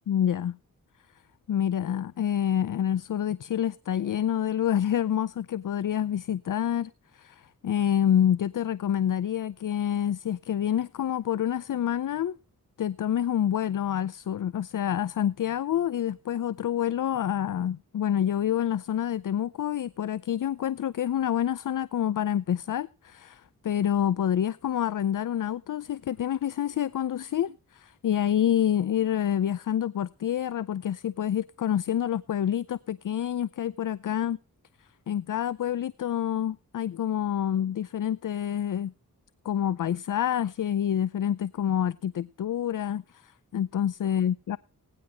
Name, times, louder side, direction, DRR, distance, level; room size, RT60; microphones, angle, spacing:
voice 1, 0.1-0.6 1.5-12.4 12.8-34.4 35.1-38.9 39.4-44.6, left 10 dB, 60° left, 0.5 m, -27 dB
20.0 x 10.0 x 2.9 m
cardioid pair, 50°, 36 cm